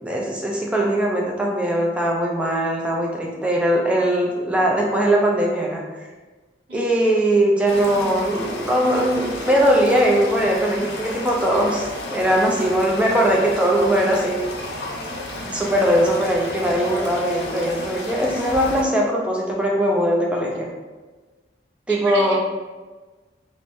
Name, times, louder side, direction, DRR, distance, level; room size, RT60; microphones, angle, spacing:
voice 1, 0.0-5.8 6.7-14.5 15.5-20.7 21.9-22.4, right 1 dB, 5° right, -2 dB, 0.3 m, -20 dB
voice 2, 6.7-7.0 21.9-22.4, right 3 dB, 80° right, 0 dB, 0.4 m, -32 dB
sound 1, 7.7-18.8, left 1 dB, 65° left, 0.5 m, -32 dB
3.0 x 2.0 x 2.5 m, 1.3 s
head